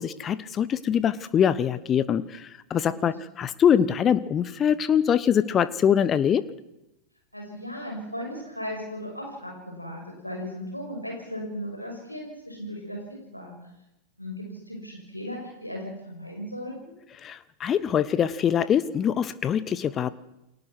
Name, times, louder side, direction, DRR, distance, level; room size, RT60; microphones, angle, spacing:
voice 1, 0.0-6.4 17.2-20.1, left 8 dB, 25° left, 16 dB, 1.0 m, -23 dB
voice 2, 7.3-13.0 13.3-13.5 14.2-16.9, equal, 90° left, 1 dB, 6.3 m, -36 dB
29.5 x 22.5 x 6.3 m, 0.91 s
figure-of-eight pair, 90°, 0 cm